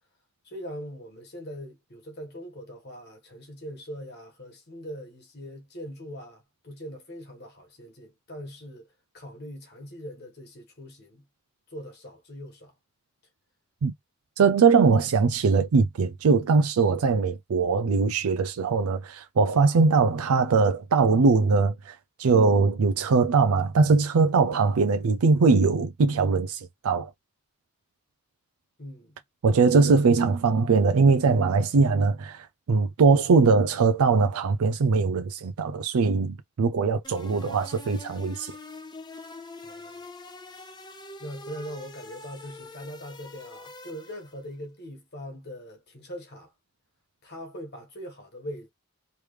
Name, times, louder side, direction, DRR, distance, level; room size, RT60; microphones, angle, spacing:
voice 1, 0.4-8.9 9.1-11.2 11.7-12.7 28.8-29.2 39.6-40.1 41.2-46.5 47.2-48.7, equal, 50° left, 1.6 m, -41 dB
voice 2, 14.4-27.1 29.4-38.5, right 4 dB, 85° right, 0.4 m, -21 dB
sound 1, 37.0-44.5, left 2 dB, 20° left, 0.6 m, -44 dB
3.2 x 3.2 x 3.2 m
head